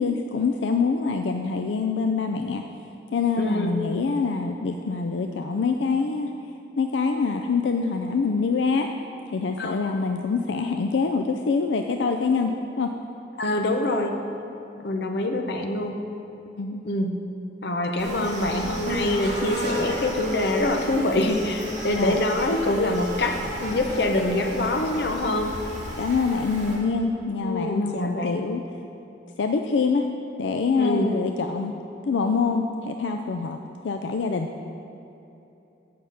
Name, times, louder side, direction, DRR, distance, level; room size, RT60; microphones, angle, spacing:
voice 1, 0.0-2.6 3.1-6.3 6.8-8.9 9.3-12.9 14.8-14.9 16.5-16.8 21.9-22.2 26.0-28.6 29.4-30.1 30.4-31.8 32.0-33.6 33.8-34.5, left 4 dB, 90° left, 4 dB, 0.4 m, -25 dB
voice 2, 3.4-3.7 9.6-9.8 13.4-14.2 14.8-15.9 16.8-17.2 17.6-25.6 27.4-28.4 30.8-31.1, left 1 dB, 65° left, 4 dB, 0.8 m, -25 dB
sound 1, 18.0-26.8, equal, 45° right, 2.3 m, -34 dB
8.5 x 5.7 x 6.8 m, 2.9 s
head